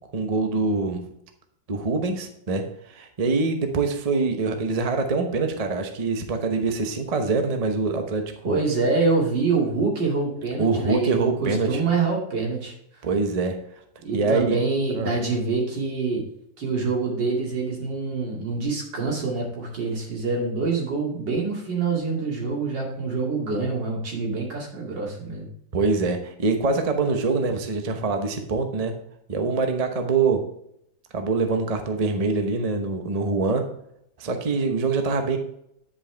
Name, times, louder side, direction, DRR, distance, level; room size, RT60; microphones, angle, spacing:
voice 1, 0.1-1.0 1.7-2.6 2.9-8.6 10.6-11.8 13.0-13.6 14.1-14.5 15.0-15.1 25.7-28.9 29.3-30.4 31.1-33.6 34.2-35.4, right 3 dB, 30° right, 5 dB, 0.7 m, -24 dB
voice 2, 8.4-12.7 14.0-16.2 16.6-25.5, right 4 dB, 75° right, -2 dB, 3.1 m, -25 dB
9.9 x 5.4 x 3.4 m, 0.75 s
omnidirectional pair, 2.0 m